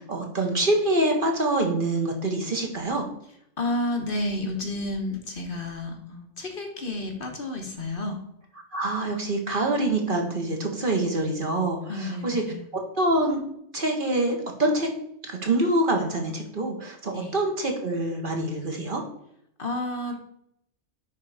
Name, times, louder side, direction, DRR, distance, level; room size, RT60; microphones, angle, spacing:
voice 1, 0.0-3.0 8.7-12.4 13.0-13.4 13.7-14.9 15.3-19.0, right 2 dB, 45° right, 2 dB, 1.5 m, -25 dB
voice 2, 3.6-8.2 11.9-12.7 17.1-17.3 19.6-20.2, left 1 dB, 45° left, 3 dB, 1.3 m, -31 dB
9.6 x 3.7 x 4.9 m, 0.74 s
omnidirectional pair, 1.3 m